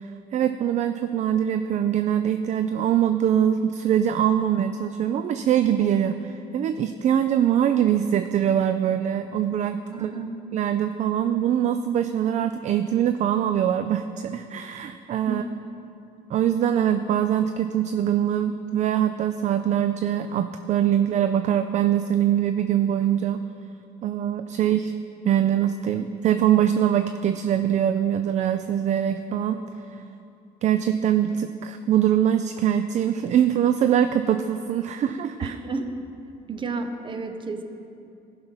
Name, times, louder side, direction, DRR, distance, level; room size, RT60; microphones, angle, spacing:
voice 1, 0.0-10.1 10.5-15.4 16.3-23.4 24.0-24.9 25.2-29.6 30.6-35.5, right 10 dB, 45° right, 9 dB, 0.4 m, -23 dB
voice 2, 9.9-10.3 15.3-15.5 35.4-36.0 36.5-37.6, right 4 dB, 30° right, 7 dB, 0.8 m, -31 dB
14.0 x 5.6 x 5.7 m, 2.7 s
cardioid pair, 110°, 17 cm